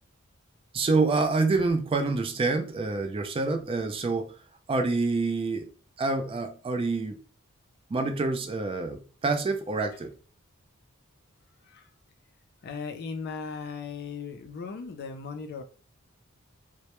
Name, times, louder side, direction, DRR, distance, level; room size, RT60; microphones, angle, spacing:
voice 1, 0.7-4.3 4.7-5.7 6.0-7.2 7.9-10.1, right 3 dB, 25° right, 0.3 m, -27 dB
voice 2, 12.6-15.6, left 5 dB, 50° left, 0.4 m, -37 dB
2.1 x 2.0 x 2.9 m
head